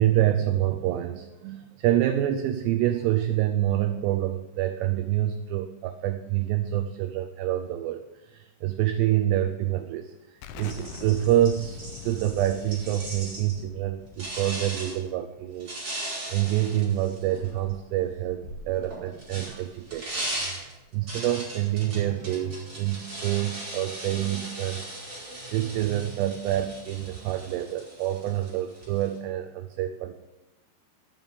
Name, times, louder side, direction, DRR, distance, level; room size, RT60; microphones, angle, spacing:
voice 1, 0.0-20.2 20.5-25.2 25.5-30.2, right 13 dB, 80° right, 7 dB, 2.6 m, -27 dB
Explosion, 10.4-15.9, left 8 dB, 90° left, 3.3 m, -44 dB
sound 1, 10.6-13.6 14.2-15.0 15.6-17.7 18.8-29.2, right 1 dB, 20° right, 5.1 m, -38 dB
sound 2, 16.2-21.2, equal, 60° left, 3.2 m, -50 dB
12.5 x 9.5 x 5.3 m, 1.0 s
omnidirectional pair, 5.4 m